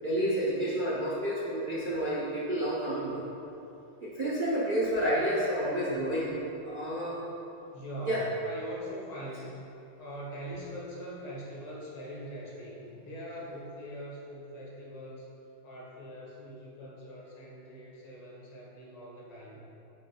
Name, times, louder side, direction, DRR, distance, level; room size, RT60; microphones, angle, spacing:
voice 1, 0.0-3.2 4.0-6.3 6.6-7.2 8.1-8.2, right 1 dB, 70° right, -7 dB, 0.4 m, -30 dB
voice 2, 7.7-9.5 10.0-15.3 15.6-19.6, equal, 90° left, -5 dB, 2.3 m, -42 dB
8.5 x 6.8 x 2.3 m, 2.8 s
omnidirectional pair, 2.2 m